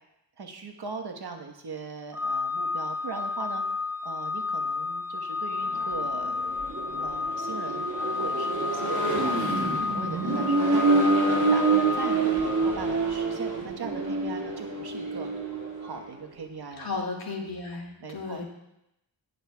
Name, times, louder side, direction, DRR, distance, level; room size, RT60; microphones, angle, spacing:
voice 1, 0.4-3.6 4.0-6.4 7.0-7.9 8.2-10.9 11.2-15.3 15.8-16.9 18.0-18.4, right 4 dB, 60° right, 4 dB, 1.2 m, -39 dB
Organ, 2.1-12.9, left 4 dB, 5° right, 0.7 m, -31 dB
Accelerating revving vroom, 5.6-16.1, right 3 dB, 40° right, 2.2 m, -27 dB
voice 2, 16.8-18.4, left 3 dB, 55° left, 0 dB, 2.1 m, -34 dB
18.0 x 6.7 x 2.3 m, 0.84 s
cardioid pair, 50°, 44 cm